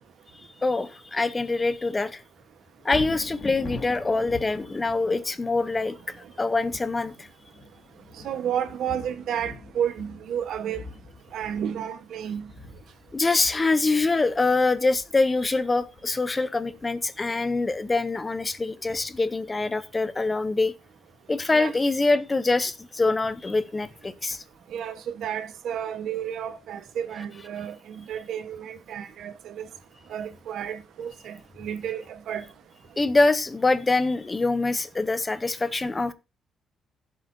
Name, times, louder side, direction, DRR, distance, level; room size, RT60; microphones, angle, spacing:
voice 1, 0.6-2.2 2.8-7.3 13.1-20.7 21.3-24.4 33.0-36.1, left 3 dB, 20° left, 0.7 m, -24 dB
Thunder, 2.8-17.0 17.5-17.6, left 3 dB, 40° left, 2.3 m, -43 dB
voice 2, 8.2-10.8 11.3-12.5 21.5-21.7 24.7-29.7 30.1-32.5, right 9 dB, 70° right, 1.1 m, -32 dB
16.0 x 7.6 x 2.7 m
cardioid pair, 145°, 0 cm